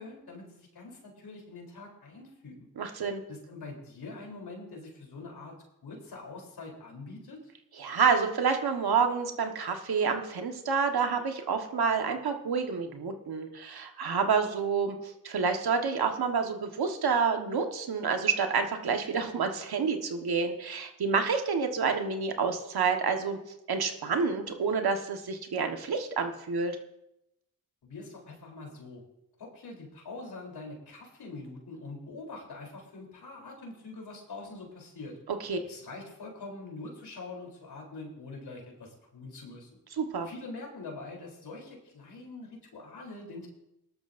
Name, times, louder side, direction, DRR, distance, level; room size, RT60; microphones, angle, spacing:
voice 1, 0.0-2.7 3.3-5.6 5.8-7.4 27.8-29.0 29.4-35.2 35.6-39.8 40.3-43.5, left 3 dB, 85° left, 0 dB, 3.7 m, -44 dB
voice 2, 2.8-3.2 7.8-23.4 23.7-26.7 35.3-35.6 40.0-40.3, right 5 dB, 75° right, 5 dB, 1.5 m, -28 dB
18.5 x 12.5 x 2.7 m, 0.85 s
cardioid pair, 55°, 38 cm